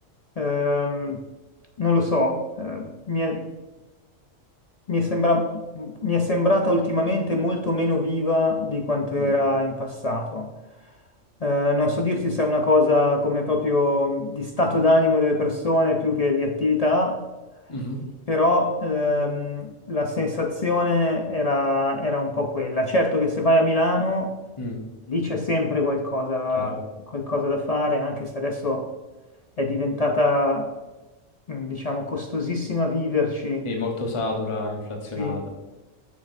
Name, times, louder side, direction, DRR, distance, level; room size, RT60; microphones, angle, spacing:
voice 1, 0.4-1.2 1.8-3.5 4.9-10.5 11.4-17.2 18.3-24.3 25.1-26.8 27.1-28.9 29.6-30.7 31.5-33.7 35.2-35.3, left 2 dB, 55° left, 2 dB, 0.4 m, -23 dB
voice 2, 17.7-18.0 24.6-24.8 26.5-26.8 33.6-35.5, left 2 dB, 25° left, 1 dB, 1.0 m, -30 dB
7.1 x 6.2 x 2.6 m, 1.1 s
omnidirectional pair, 1.4 m